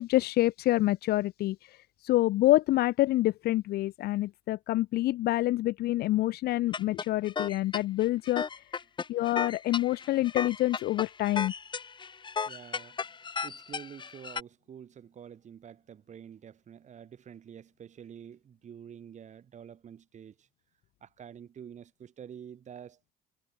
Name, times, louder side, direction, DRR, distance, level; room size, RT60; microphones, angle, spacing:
voice 1, 0.0-1.6 2.0-8.4 9.1-11.5, left 16 dB, 70° left, 0.5 m, -27 dB
sound 1, 6.7-14.4, left 5 dB, 30° left, 1.2 m, -35 dB
voice 2, 12.5-20.5 21.0-23.0, right 8 dB, 45° right, 2.4 m, -48 dB
cardioid pair, 110°, 17 cm